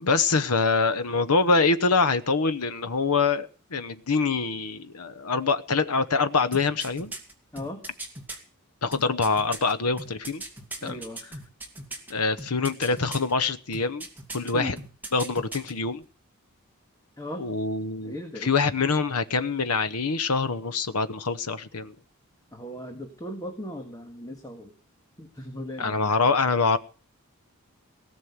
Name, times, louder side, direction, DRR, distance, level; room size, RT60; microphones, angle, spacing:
voice 1, 0.0-7.1 8.8-10.4 10.8-11.0 12.1-14.1 14.3-14.8 15.1-16.0 17.4-18.1 18.4-21.9 25.8-26.8, left 4 dB, 85° left, 12 dB, 1.0 m, -25 dB
sound 1, 6.5-8.4 8.9-12.1 12.4-13.3 13.7-14.5 14.8-15.7 16.0-16.1, right 2 dB, 10° right, 2.7 m, -38 dB
voice 2, 10.8-11.2 14.5-14.8 17.2-17.4 18.1-18.6 22.5-24.7 25.2-26.2, left 1 dB, 15° left, 4 dB, 1.9 m, -37 dB
18.5 x 6.4 x 9.6 m, 0.40 s
head